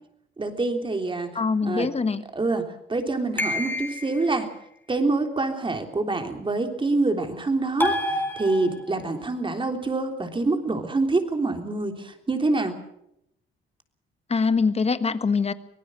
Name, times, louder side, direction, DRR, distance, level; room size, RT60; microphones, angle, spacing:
voice 1, 0.4-1.9 2.3-4.5 4.9-12.8, right 3 dB, 25° right, 5 dB, 3.4 m, -26 dB
voice 2, 1.3-2.2 14.3-15.5, left 4 dB, 30° left, 12 dB, 1.4 m, -23 dB
sound 1, 3.4-4.3 7.8-9.0, left 1 dB, 10° left, 4.0 m, -28 dB
24.5 x 18.5 x 6.5 m, 0.79 s
cardioid pair, 90°, 20 cm